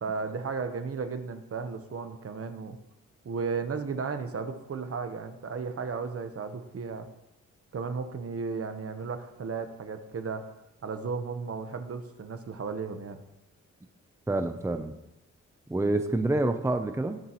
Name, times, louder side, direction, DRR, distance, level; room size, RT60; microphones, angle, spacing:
voice 1, 0.0-2.8 3.2-7.1 7.7-10.5 10.8-13.2, right 5 dB, 55° right, 8 dB, 1.1 m, -34 dB
voice 2, 14.3-15.0 15.7-17.2, right 2 dB, 10° right, 7 dB, 0.7 m, -27 dB
20.0 x 7.2 x 3.1 m, 0.92 s
wide cardioid pair, 105°, 29 cm